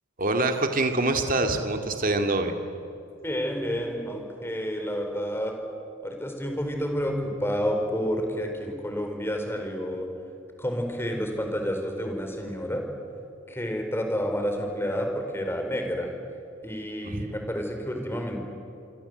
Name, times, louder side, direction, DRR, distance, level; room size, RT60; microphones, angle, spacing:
voice 1, 0.2-2.5 17.0-17.3, right 2 dB, 45° right, 5 dB, 2.3 m, -25 dB
voice 2, 3.2-5.5 6.0-10.1 10.6-12.8 13.5-16.1 16.6-18.4, equal, 10° left, 3 dB, 4.5 m, -29 dB
28.0 x 23.5 x 8.0 m, 2.7 s
head